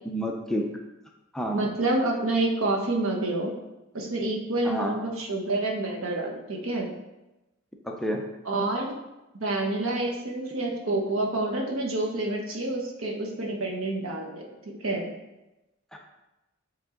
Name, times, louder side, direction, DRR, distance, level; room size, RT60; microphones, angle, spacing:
voice 1, 0.1-0.7 1.3-1.6 4.6-5.0 7.9-8.2 15.9-16.0, equal, ahead, 1 dB, 0.6 m, -29 dB
voice 2, 1.5-3.5 3.9-6.9 8.4-8.9 9.4-14.5 14.8-15.1, right 2 dB, 85° right, 1 dB, 1.1 m, -28 dB
7.1 x 3.6 x 3.9 m, 0.99 s
head